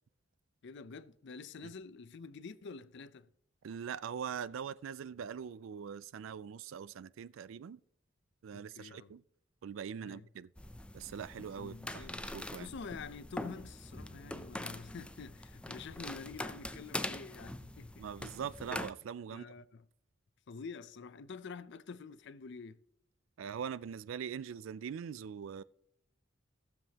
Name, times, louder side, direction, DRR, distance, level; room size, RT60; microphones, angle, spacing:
voice 1, 0.6-3.3 8.5-9.1 10.0-10.3 11.6-12.2 12.6-18.0 19.3-19.8 20.5-22.8, left 5 dB, 65° left, 0.5 m, -47 dB
voice 2, 3.6-7.8 8.4-9.2 9.6-10.5 10.9-12.1 12.3-12.7 18.0-19.4 23.4-25.6, right 7 dB, 75° right, 0.3 m, -42 dB
sound 1, 10.6-18.9, left 1 dB, 5° left, 0.4 m, -43 dB
15.5 x 7.4 x 2.8 m
head